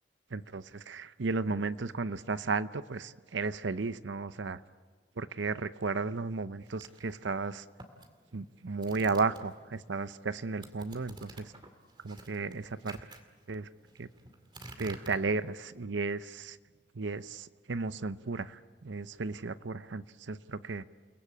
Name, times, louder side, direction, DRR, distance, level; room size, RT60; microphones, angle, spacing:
voice 1, 0.3-4.6 5.2-7.6 8.3-11.5 12.0-13.0 13.5-13.7 14.0-14.1 14.8-16.6 16.9-20.8, right 4 dB, 85° right, 14 dB, 0.7 m, -34 dB
sound 1, 6.7-9.8 10.1-15.8, right 2 dB, 25° right, 2.2 m, -51 dB
29.5 x 20.0 x 8.6 m, 1.5 s
head